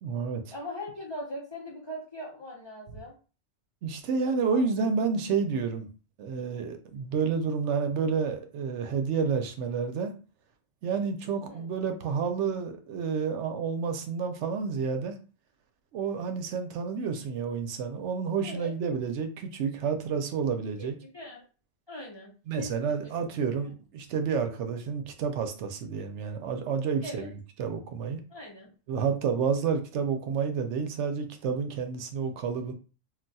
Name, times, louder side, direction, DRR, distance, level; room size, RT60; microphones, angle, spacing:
voice 1, 0.0-0.5 3.8-5.9 6.2-10.1 10.8-15.2 15.9-20.9 22.5-27.3 27.6-28.2 28.9-32.7, right 6 dB, 80° right, 6 dB, 0.9 m, -30 dB
voice 2, 0.5-3.1 4.5-4.8 11.5-11.7 18.4-18.7 20.8-21.4 21.9-23.1 23.6-23.7 27.0-27.3 28.3-28.7, left 1 dB, 30° left, -3 dB, 0.7 m, -41 dB
2.4 x 2.3 x 3.9 m, 0.35 s
omnidirectional pair, 1.2 m